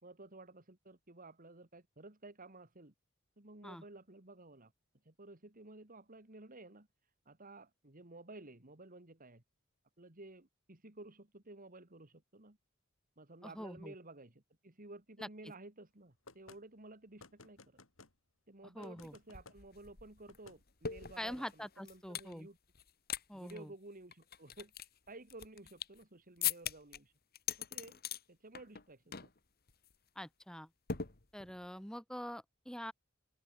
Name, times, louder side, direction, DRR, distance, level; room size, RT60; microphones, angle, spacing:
voice 1, 0.0-2.9 3.4-4.7 5.0-6.9 7.3-9.4 10.0-12.6 13.2-17.8 18.5-22.6 23.3-24.7 25.1-27.1 27.6-28.0 28.3-29.3, right 2 dB, 40° right, 2.7 m, -54 dB
voice 2, 13.4-13.9 15.2-15.3 18.7-19.2 21.2-22.5 23.3-23.7 30.1-30.7 31.3-32.9, equal, 5° left, 3.4 m, -45 dB
sound 1, 16.3-16.6 17.2-18.1 18.8-19.6 20.3-20.6, left 3 dB, 70° left, 3.2 m, -57 dB
sound 2, 19.0-19.1 19.3-22.3 22.7-23.2 23.5-23.6 24.1-26.0 26.4-27.0 27.3-28.2 28.5-28.8 29.1-29.4 29.7-29.9 30.9-31.6, left 9 dB, 50° left, 1.9 m, -41 dB
open air
head